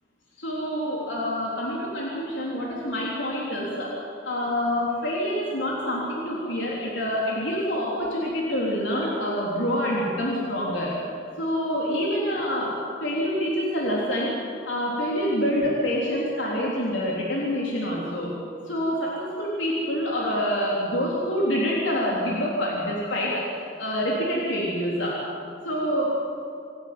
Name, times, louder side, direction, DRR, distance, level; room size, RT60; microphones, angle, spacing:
voice 1, 0.4-3.9 4.3-10.9 11.4-18.3 18.7-25.2 25.6-26.2, equal, 85° left, -4 dB, 3.6 m, -26 dB
26.5 x 11.5 x 9.6 m, 2.5 s
head